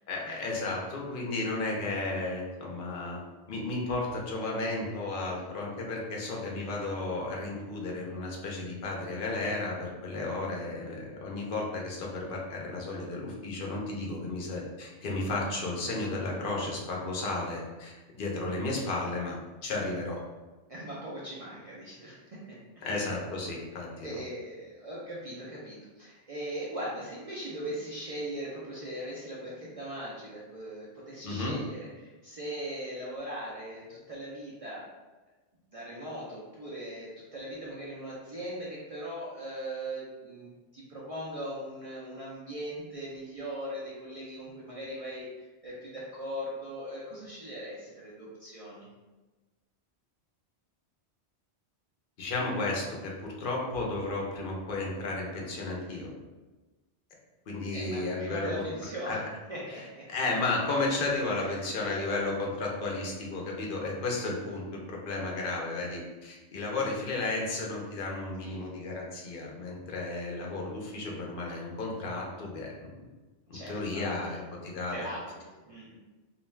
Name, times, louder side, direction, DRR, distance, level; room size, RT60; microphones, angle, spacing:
voice 1, 0.1-3.2 3.5-20.2 22.8-24.1 31.2-31.5 52.2-56.1 57.5-58.5 59.1-59.2 60.1-72.9 73.7-75.1, left 2 dB, 55° left, -2 dB, 0.7 m, -33 dB
voice 2, 20.7-23.1 24.0-34.8 35.7-48.9 57.7-59.2 59.5-60.1 60.7-62.0 68.4-68.7 73.5-74.4 74.9-76.0, right 1 dB, 50° right, -6 dB, 0.4 m, -40 dB
2.4 x 2.2 x 3.1 m, 1.2 s
omnidirectional pair, 1.1 m